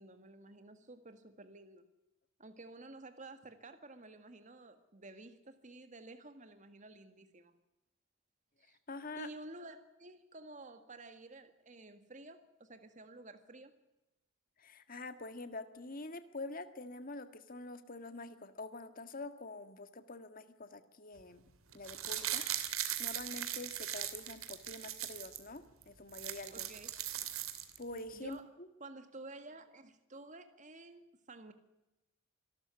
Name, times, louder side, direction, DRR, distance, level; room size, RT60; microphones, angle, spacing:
voice 1, 0.0-1.9 2.4-7.5 8.6-8.8 9.2-13.7 26.5-26.9 28.1-28.5 28.8-31.5, right 2 dB, 35° right, 9 dB, 1.8 m, -52 dB
voice 2, 8.9-9.3 14.6-21.4 21.7-22.7 23.0-26.7 27.8-28.7, left 2 dB, 40° left, 10 dB, 1.7 m, -46 dB
sound 1, 21.7-25.4 25.8-25.9 26.1-28.0 28.3-28.4, right 11 dB, 90° right, 2.6 m, -39 dB
26.0 x 13.0 x 9.6 m, 0.95 s
head